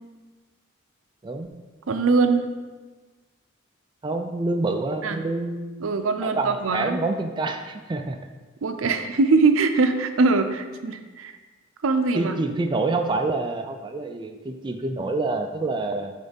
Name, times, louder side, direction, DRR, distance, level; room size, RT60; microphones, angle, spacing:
voice 1, 1.9-2.5 5.0-5.2 5.8-7.0 8.6-11.3 11.8-12.3, right 4 dB, 80° right, 8 dB, 0.5 m, -22 dB
voice 2, 4.0-5.9 6.2-8.2 12.1-16.1, right 2 dB, 20° right, 5 dB, 0.3 m, -27 dB
6.4 x 3.8 x 5.1 m, 1.3 s
head